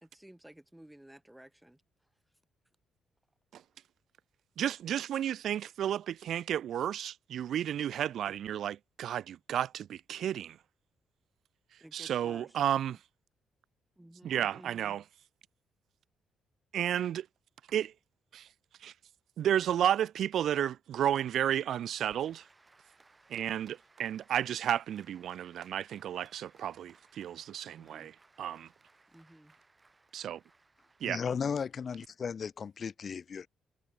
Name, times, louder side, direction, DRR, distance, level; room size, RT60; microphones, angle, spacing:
voice 1, 0.0-1.8 11.8-12.6 14.0-15.0 27.8-28.1 29.1-29.6, right 1 dB, 5° right, 2.0 m, -54 dB
voice 2, 4.6-10.6 11.9-13.0 14.2-15.0 16.7-17.2 17.7-17.9 18.3-18.4 18.8-18.9 19.4-22.4 23.3-28.1 28.4-28.7 30.1-30.4 31.0-31.2, right 10 dB, 70° right, 0.4 m, -32 dB
Applause, 22.0-32.1, right 3 dB, 25° right, 6.2 m, -64 dB
voice 3, 31.0-33.5, left 6 dB, 45° left, 1.5 m, -35 dB
cardioid pair, 90°, 0 cm